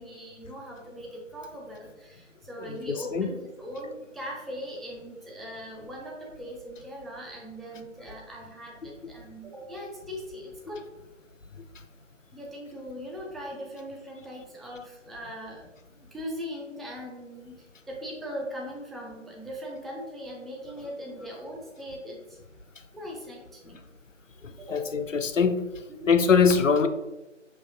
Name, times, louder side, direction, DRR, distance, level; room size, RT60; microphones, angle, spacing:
voice 1, 0.0-10.8 12.3-22.4 22.9-23.8 24.6-24.9 25.9-26.2, equal, ahead, -2 dB, 0.4 m, -40 dB
voice 2, 2.6-3.3 24.4-25.6 26.1-26.9, left 5 dB, 75° left, 8 dB, 0.5 m, -23 dB
5.5 x 2.8 x 2.5 m, 1.1 s
figure-of-eight pair, 175°, 38 cm